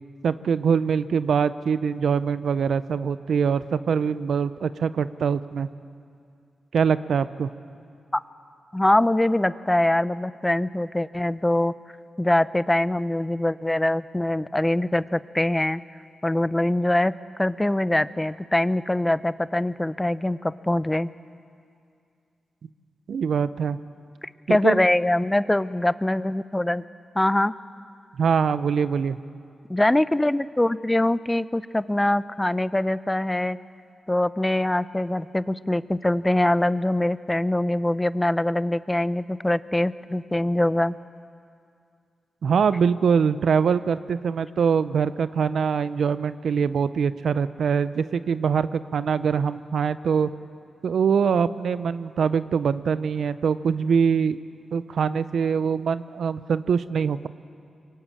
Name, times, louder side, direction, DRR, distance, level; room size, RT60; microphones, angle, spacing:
voice 1, 0.2-5.7 6.7-7.5 23.1-23.8 24.5-24.8 28.2-29.2 42.4-50.3 50.8-54.4 54.7-57.3, right 6 dB, 75° right, 14 dB, 0.6 m, -23 dB
voice 2, 8.7-11.7 12.2-15.8 16.2-17.1 17.4-21.1 24.2-26.8 27.1-27.5 29.7-33.6 34.1-41.0, left 1 dB, 15° left, 16 dB, 0.6 m, -23 dB
23.0 x 18.0 x 8.5 m, 2.4 s
cardioid pair, 50°, 0 cm